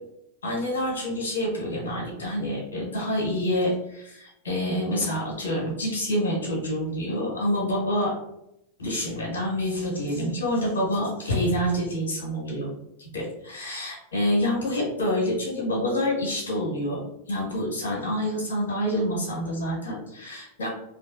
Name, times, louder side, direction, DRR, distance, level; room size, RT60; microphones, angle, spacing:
voice 1, 0.4-8.1 8.8-12.7 13.0-20.7, equal, 85° left, -4 dB, 1.2 m, -27 dB
2.5 x 2.3 x 2.6 m, 0.80 s
hypercardioid pair, 105°, 0 cm